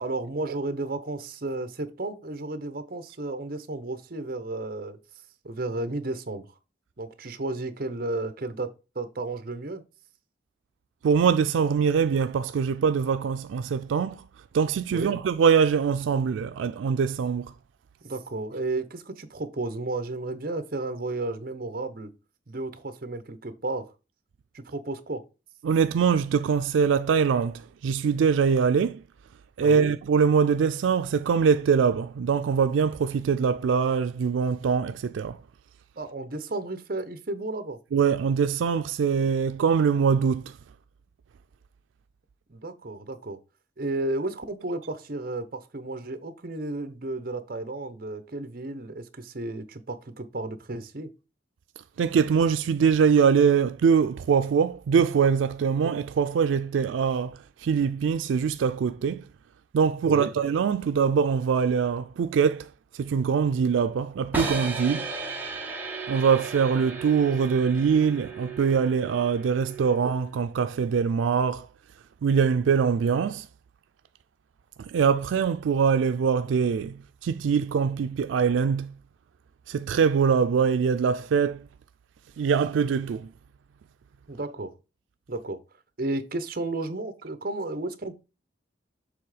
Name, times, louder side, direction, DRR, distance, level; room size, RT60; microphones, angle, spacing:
voice 1, 0.0-5.0 5.4-6.5 7.0-9.8 14.9-15.2 18.0-22.1 22.5-23.9 24.5-25.2 29.6-29.9 36.0-37.8 42.5-43.4 43.8-51.1 60.0-60.3 84.3-84.7 85.3-85.6 86.0-88.1, right 2 dB, 50° right, 0.8 m, -33 dB
voice 2, 11.0-14.2 14.5-17.5 25.6-29.0 29.6-35.4 37.9-40.6 52.0-59.2 59.7-65.1 66.1-71.7 72.2-73.5 74.8-78.9 79.7-81.7 82.4-83.3, right 6 dB, 90° right, 0.3 m, -23 dB
sound 1, 64.3-70.3, right 3 dB, 10° right, 0.9 m, -35 dB
7.0 x 3.5 x 4.8 m
head